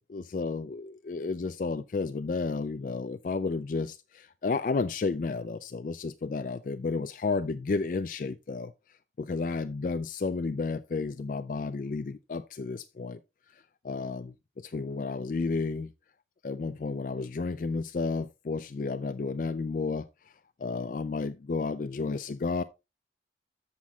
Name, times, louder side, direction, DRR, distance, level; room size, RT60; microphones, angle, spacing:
voice 1, 0.1-8.7 9.2-13.2 13.5-15.9 16.4-20.1 20.6-22.6, left 4 dB, 45° left, 0.3 m, -32 dB
13.5 x 5.8 x 2.3 m
head